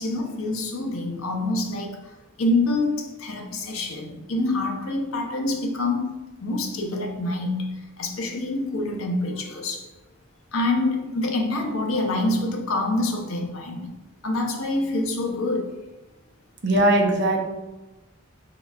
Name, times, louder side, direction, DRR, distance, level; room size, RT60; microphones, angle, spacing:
voice 1, 0.0-6.1 6.4-9.9 10.5-13.9 14.2-15.8, left 2 dB, 75° left, 0.7 m, -26 dB
voice 2, 16.6-17.4, right 1 dB, 55° right, 0.7 m, -19 dB
5.3 x 3.8 x 2.4 m
head